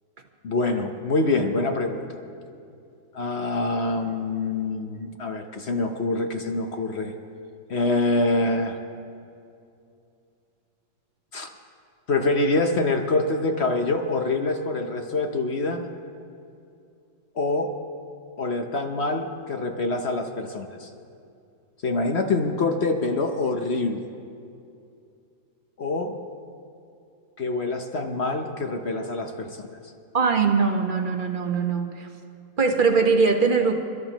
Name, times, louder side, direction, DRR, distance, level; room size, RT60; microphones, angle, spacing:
voice 1, 0.4-2.0 3.1-7.1 7.7-8.8 11.3-11.5 12.1-15.8 17.3-17.7 18.4-20.9 21.8-24.0 25.8-26.2 27.4-29.7, left 2 dB, 45° left, 5 dB, 0.9 m, -25 dB
voice 2, 30.1-32.1 32.6-33.7, right 5 dB, 35° right, 4 dB, 1.0 m, -21 dB
29.5 x 13.5 x 3.0 m, 2.5 s
omnidirectional pair, 2.0 m